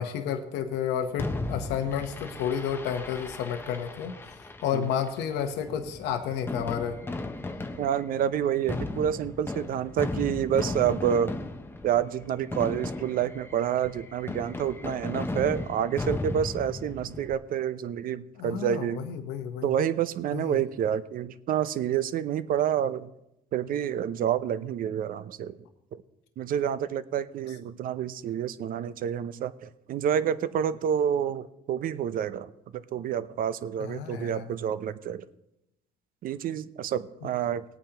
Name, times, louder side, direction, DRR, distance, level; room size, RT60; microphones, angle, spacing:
voice 1, 0.0-4.1 4.6-7.0 18.4-19.7 20.3-20.6 33.8-34.5, left 8 dB, 90° left, 6 dB, 0.9 m, -31 dB
Fireworks, 1.2-17.3, left 2 dB, 15° left, 0.7 m, -36 dB
voice 2, 7.8-11.3 11.8-19.1 19.6-23.1 23.5-25.6 26.4-35.2 36.2-37.6, right 9 dB, 55° right, 15 dB, 0.6 m, -28 dB
19.0 x 8.8 x 2.9 m, 0.86 s
cardioid pair, 110°, 17 cm